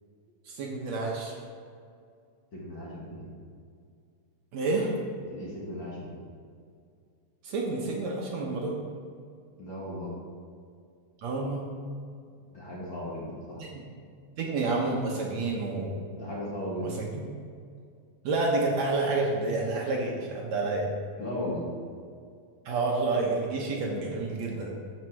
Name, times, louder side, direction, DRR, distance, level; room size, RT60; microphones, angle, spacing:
voice 1, 0.5-1.3 4.5-4.9 7.4-8.8 11.2-11.7 13.6-13.8 14.4-16.0 16.8-17.3 18.2-20.9 22.7-24.7, right 3 dB, 65° right, -1 dB, 2.2 m, -29 dB
voice 2, 2.5-3.3 5.2-6.2 9.6-10.1 12.5-13.6 16.1-16.9 21.2-21.6, left 1 dB, 40° left, -6 dB, 2.2 m, -36 dB
14.0 x 5.9 x 4.6 m, 2.2 s
omnidirectional pair, 3.7 m